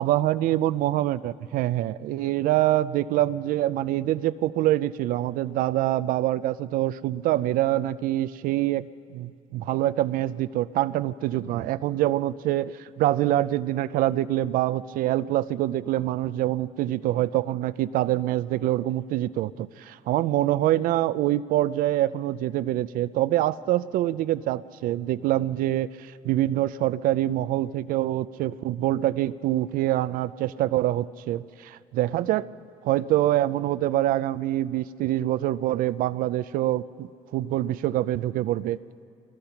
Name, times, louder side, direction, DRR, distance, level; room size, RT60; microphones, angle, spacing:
voice 1, 0.0-32.5 32.8-38.8, right 14 dB, 80° right, 15 dB, 0.5 m, -25 dB
24.0 x 20.5 x 5.8 m, 2.3 s
cardioid pair, 90°, 14 cm